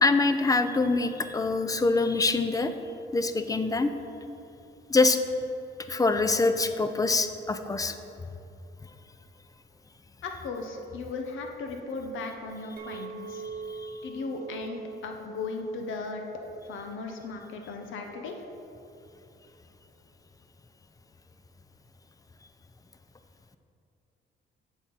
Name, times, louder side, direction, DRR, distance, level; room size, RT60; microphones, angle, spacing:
voice 1, 0.0-2.7 3.1-3.9 4.9-5.2 5.9-7.9, left 3 dB, 15° left, 9 dB, 0.5 m, -24 dB
voice 2, 10.2-13.4 14.0-16.2 16.7-18.3, left 4 dB, 80° left, 3 dB, 0.9 m, -37 dB
Chink clink, 12.8-18.0, right 5 dB, 50° right, 0.9 m, -43 dB
8.1 x 6.0 x 4.0 m, 2.8 s
cardioid pair, 90°, 20 cm